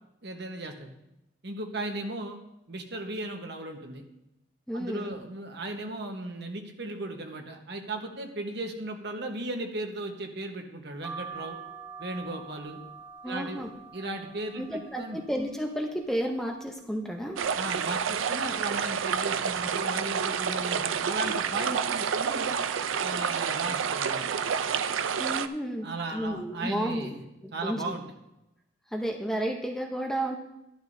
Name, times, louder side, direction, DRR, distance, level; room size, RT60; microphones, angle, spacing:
voice 1, 0.2-0.9 1.4-2.4 2.7-4.0 4.7-11.6 12.0-12.8 13.3-13.6 13.9-15.2 17.6-22.6 23.0-24.2 25.8-27.2 27.5-28.0, right 2 dB, 55° right, 3 dB, 1.2 m, -36 dB
voice 2, 4.7-5.1 13.2-13.7 14.6-17.4 25.2-27.1 27.4-28.0 28.9-30.4, equal, ahead, 1 dB, 0.7 m, -32 dB
sound 1, 11.0-16.7 17.2-17.9 18.3-18.4 18.6-19.7 20.2-20.6 21.3-21.7 22.5-22.7 23.0-23.2, right 5 dB, 15° right, 1.4 m, -46 dB
sound 2, 17.4-25.5, right 7 dB, 85° right, 0.5 m, -29 dB
12.5 x 11.5 x 2.7 m, 0.88 s
head